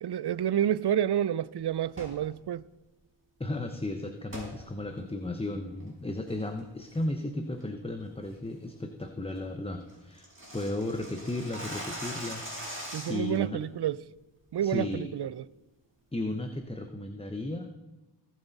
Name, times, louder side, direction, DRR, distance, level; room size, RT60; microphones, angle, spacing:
voice 1, 0.0-2.6 12.9-14.0 14.5-15.3, right 10 dB, 55° right, 0.5 m, -29 dB
sound 1, 1.9-2.2 4.3-4.5 5.0-5.1 5.6-5.9 6.3-6.6 6.9-7.2 7.6-7.7 8.1-8.3 8.7-8.8 9.1-9.2 9.4-9.5 9.7-13.4, equal, 25° right, 4.6 m, -41 dB
voice 2, 3.4-10.3 10.5-12.5 13.1-13.6 14.6-15.1 16.1-17.8, left 2 dB, 10° left, 0.8 m, -34 dB
18.5 x 7.5 x 4.1 m
wide cardioid pair, 60°, 48 cm